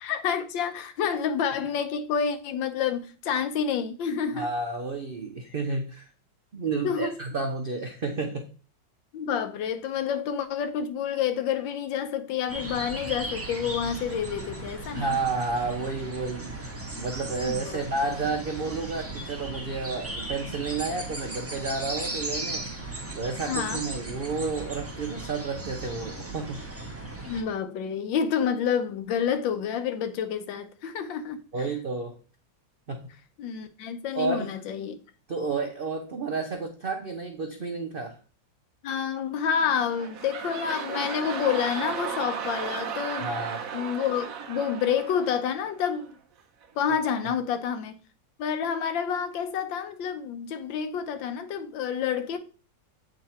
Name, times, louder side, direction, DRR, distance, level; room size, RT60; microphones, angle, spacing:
voice 1, 0.0-4.5 6.6-7.1 9.1-15.1 17.4-17.8 23.5-23.8 27.3-31.4 33.4-35.0 38.8-43.3 43.7-46.1 46.8-47.9 48.4-52.4, left 7 dB, 85° left, 1.5 m, -29 dB
voice 2, 4.3-6.1 6.5-8.5 14.9-22.7 23.1-26.6 31.5-32.1 32.9-33.0 34.1-34.6 35.3-38.1 43.2-43.7, right 3 dB, 90° right, 0.4 m, -31 dB
sound 1, 12.5-27.4, right 2 dB, 10° right, 0.9 m, -36 dB
sound 2, 39.6-46.1 46.6-46.7, right 7 dB, 55° right, 1.1 m, -35 dB
8.0 x 3.8 x 4.2 m
omnidirectional pair, 2.0 m